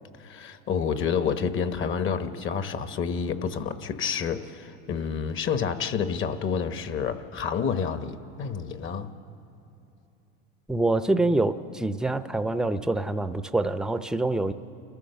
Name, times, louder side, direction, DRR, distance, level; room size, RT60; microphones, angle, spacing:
voice 1, 0.2-9.1, left 6 dB, 40° left, 10 dB, 1.2 m, -29 dB
voice 2, 10.7-14.5, right 2 dB, ahead, 11 dB, 0.6 m, -25 dB
29.5 x 14.5 x 6.9 m, 2.9 s
supercardioid pair, 105°, 31 cm